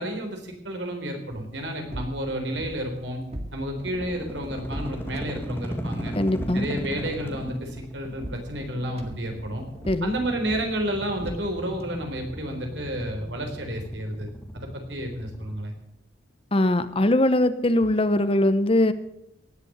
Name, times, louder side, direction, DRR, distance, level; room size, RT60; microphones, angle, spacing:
voice 1, 0.0-3.2 3.5-6.2 6.5-9.7 10.0-14.3 14.5-15.7, right 1 dB, 75° right, 3 dB, 3.9 m, -31 dB
sound 1, 1.3-11.9, equal, 35° right, 1.8 m, -41 dB
sound 2, 3.8-15.5, equal, 10° left, 1.9 m, -37 dB
voice 2, 6.1-6.6 9.9-10.1 16.5-18.9, left 1 dB, 30° left, 12 dB, 0.8 m, -21 dB
18.0 x 8.3 x 7.9 m, 0.79 s
head